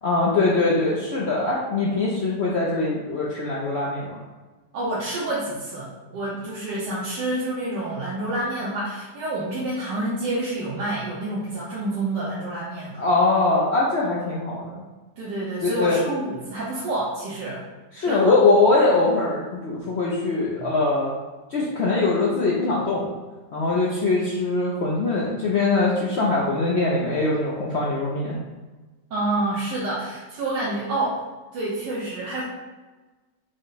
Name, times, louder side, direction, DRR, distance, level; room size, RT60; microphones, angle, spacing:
voice 1, 0.0-4.2 13.0-14.8 15.6-16.0 17.9-21.1 21.5-23.1 23.5-28.4, left 3 dB, 65° left, -5 dB, 0.6 m, -22 dB
voice 2, 4.7-13.0 15.2-17.6 18.0-18.4 20.6-20.7 29.1-31.2 31.5-32.4, right 2 dB, 80° right, -8 dB, 1.5 m, -28 dB
5.2 x 2.1 x 3.9 m, 1.2 s
omnidirectional pair, 1.9 m